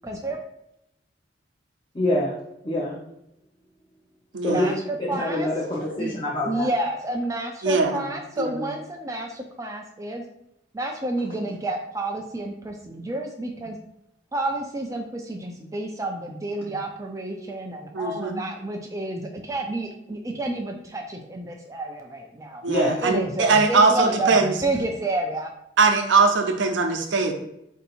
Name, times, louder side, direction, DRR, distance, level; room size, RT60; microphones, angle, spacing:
voice 1, 0.0-0.4 4.5-5.5 6.0-6.2 6.4-10.2 10.7-13.8 14.3-22.6 23.0-25.5, right 2 dB, 15° right, 2 dB, 0.4 m, -30 dB
voice 2, 1.9-2.4 2.6-3.0 4.4-4.7 5.0-6.7 22.7-23.0, left 1 dB, 25° left, -5 dB, 0.7 m, -25 dB
voice 3, 4.3-4.8 7.6-8.1 8.4-8.7 17.9-18.4 22.6-24.5 25.8-27.3, right 4 dB, 70° right, 5 dB, 0.7 m, -21 dB
4.4 x 2.7 x 4.1 m, 0.81 s
head